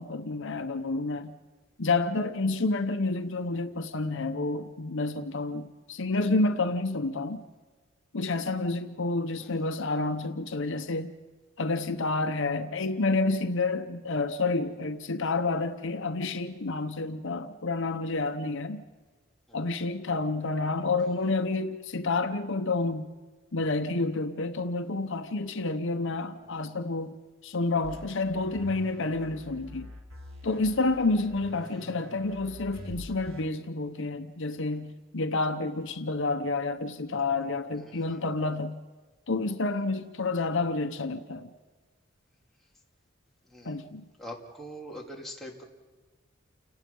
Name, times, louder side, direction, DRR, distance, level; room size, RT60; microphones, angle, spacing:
voice 1, 0.0-1.3 1.8-7.4 8.1-11.1 11.6-18.8 19.5-23.1 23.5-27.1 27.4-29.9 30.4-38.8 39.3-41.5 43.6-44.1, left 3 dB, 65° left, 7 dB, 1.0 m, -29 dB
voice 2, 9.4-9.7 14.7-14.9 19.5-19.6 21.0-21.4 26.4-26.7 31.7-31.9 32.2-32.4 37.8-38.4 43.4-43.9 44.2-45.6, equal, ahead, -2 dB, 3.0 m, -45 dB
sound 1, 27.8-33.4, left 1 dB, 90° right, 3.6 m, -46 dB
29.5 x 19.0 x 5.5 m, 1.3 s
head